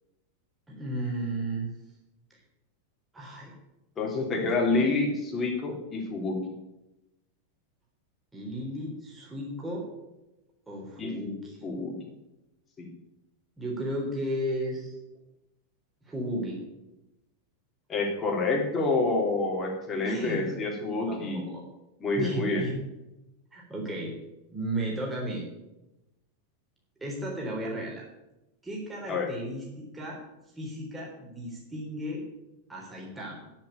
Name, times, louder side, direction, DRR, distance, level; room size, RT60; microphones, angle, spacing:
voice 1, 0.7-1.7 2.3-2.4 3.1-3.6 4.4-4.8 8.3-9.9 10.7-11.7 13.6-15.0 16.1-16.6 19.9-20.6 21.0-21.6 22.1-22.8 23.5-24.2 24.5-25.5 27.0-28.0 28.6-30.2 30.6-32.2 32.7-33.4, right 1 dB, 10° right, -2 dB, 3.6 m, -34 dB
voice 2, 4.0-6.4 11.0-11.1 11.6-11.9 12.8-12.9 17.9-21.5 22.0-22.6 29.1-29.3, left 3 dB, 20° left, 0 dB, 3.2 m, -28 dB
10.5 x 7.6 x 8.7 m, 0.95 s
figure-of-eight pair, 90°, 0 cm